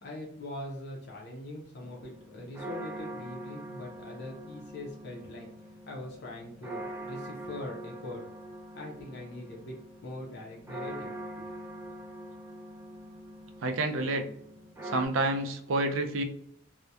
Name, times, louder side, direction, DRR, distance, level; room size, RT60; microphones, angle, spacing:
voice 1, 0.0-5.5 5.9-8.3 8.7-9.8 10.0-11.1, left 1 dB, 60° left, -1 dB, 0.6 m, -42 dB
sound 1, 1.8-15.1, right 1 dB, 15° right, 0.3 m, -44 dB
voice 2, 13.6-14.3 14.8-16.2, right 2 dB, 80° right, 5 dB, 0.4 m, -29 dB
2.7 x 2.1 x 2.2 m, 0.72 s
head